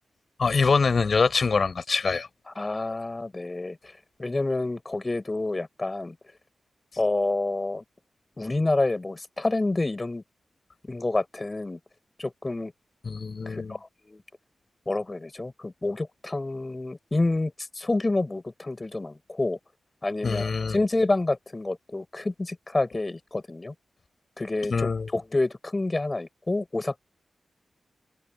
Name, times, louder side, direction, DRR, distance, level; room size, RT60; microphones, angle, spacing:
voice 1, 0.4-2.3 13.0-13.7 20.2-20.8 24.7-25.1, left 4 dB, 50° left, 6.5 m, -24 dB
voice 2, 2.5-6.2 7.0-7.8 8.4-10.2 10.9-11.8 12.2-12.7 13.5-14.2 14.9-19.6 20.0-23.7 24.4-27.0, left 2 dB, 25° left, 7.6 m, -28 dB
wide cardioid pair, 120°, 0 cm